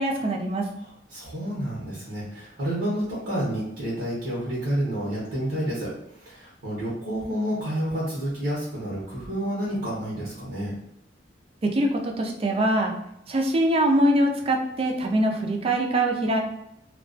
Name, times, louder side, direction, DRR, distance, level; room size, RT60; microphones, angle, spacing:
voice 1, 0.0-0.7 11.6-12.9 13.3-16.4, right 1 dB, 30° right, 2 dB, 0.3 m, -23 dB
voice 2, 0.8-10.7, equal, 85° right, -7 dB, 0.8 m, -29 dB
2.3 x 2.2 x 2.4 m, 0.82 s
head